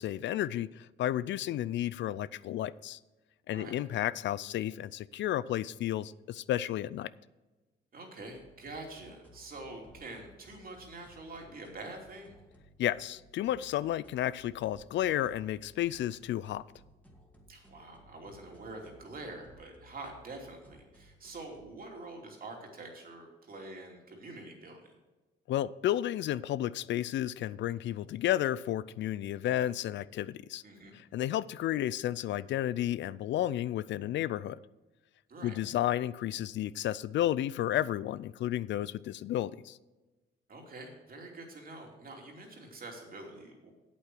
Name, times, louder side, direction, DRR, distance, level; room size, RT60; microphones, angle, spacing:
voice 1, 0.0-3.0 3.5-7.1 12.8-16.6 25.5-30.6 30.9-34.6 35.4-39.8, left 12 dB, 70° left, 0.4 m, -32 dB
voice 2, 7.9-12.4 17.5-24.9 30.6-31.0 35.3-35.6 40.5-43.7, right 2 dB, 45° right, 2.9 m, -46 dB
sound 1, 8.2-21.8, left 1 dB, 5° left, 2.2 m, -59 dB
8.6 x 8.2 x 6.1 m
cardioid pair, 90°, 20 cm